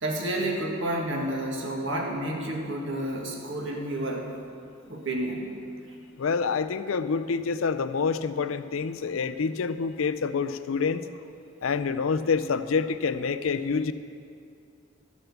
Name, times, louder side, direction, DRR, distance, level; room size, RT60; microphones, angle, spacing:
voice 1, 0.0-4.3 4.9-5.5, right 1 dB, 60° right, 0 dB, 1.8 m, -30 dB
voice 2, 6.2-11.1 11.6-13.9, left 5 dB, 80° left, 12 dB, 0.5 m, -27 dB
13.0 x 7.1 x 7.1 m, 2.5 s
head